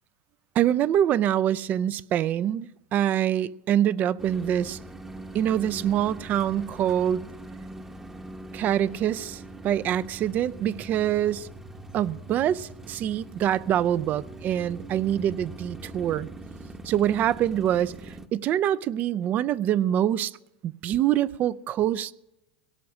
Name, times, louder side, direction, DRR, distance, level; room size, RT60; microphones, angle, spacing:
voice 1, 0.6-4.8 5.3-7.3 8.5-11.5 11.9-16.3 16.8-20.3 20.6-22.1, right 11 dB, 35° right, 0.4 m, -25 dB
sound 1, 4.2-18.3, right 2 dB, 10° right, 0.9 m, -42 dB
17.0 x 6.1 x 9.5 m
supercardioid pair, 125°, 5 cm